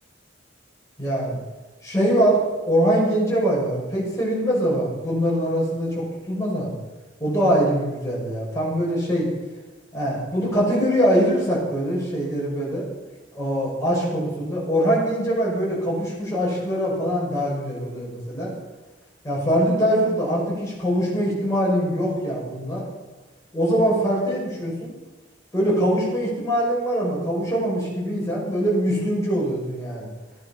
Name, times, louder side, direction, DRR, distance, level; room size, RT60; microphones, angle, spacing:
voice 1, 1.0-1.4 1.8-6.7 7.2-9.3 9.9-12.9 13.3-18.5 19.2-22.8 23.5-24.9 25.5-30.1, equal, 15° left, -5 dB, 5.7 m, -23 dB
14.5 x 10.5 x 5.8 m, 1.2 s
head